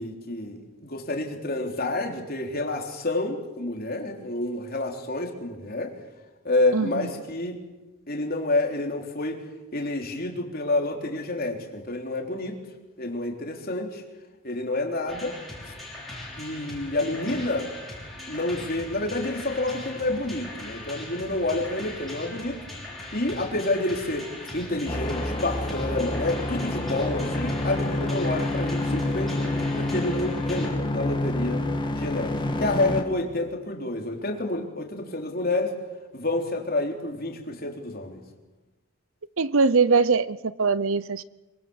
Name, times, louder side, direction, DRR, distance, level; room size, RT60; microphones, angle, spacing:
voice 1, 0.0-5.9 6.4-7.6 8.1-9.4 9.7-12.6 13.0-14.0 14.4-15.4 15.6-15.7 16.4-17.7 18.3-22.6 23.1-29.4 29.7-31.6 32.0-35.7 36.1-38.2, left 2 dB, 40° left, 2 dB, 3.7 m, -28 dB
voice 2, 6.7-7.1 39.4-41.2, right 4 dB, 65° right, 17 dB, 0.7 m, -22 dB
sound 1, 15.1-30.7, left 1 dB, ahead, 6.1 m, -40 dB
sound 2, 24.9-33.0, left 1 dB, 20° left, 1.8 m, -28 dB
25.0 x 24.0 x 7.2 m, 1.1 s
head